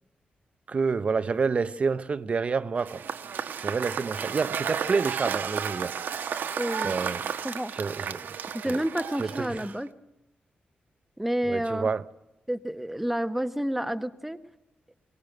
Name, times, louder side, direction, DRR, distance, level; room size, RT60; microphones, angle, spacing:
voice 1, 0.7-3.0 3.6-5.9 6.8-7.3 7.7-8.2 8.6-8.8 9.2-9.7 11.5-12.1, right 5 dB, 40° right, 0.8 m, -28 dB
Cheering / Applause / Crowd, 2.8-9.9, right 7 dB, 80° right, 1.3 m, -33 dB
voice 2, 6.6-6.9 7.4-7.7 8.5-9.9 11.2-11.9 12.5-14.4, right 1 dB, 5° right, 1.2 m, -29 dB
23.5 x 19.0 x 8.0 m
wide cardioid pair, 140°, 3 cm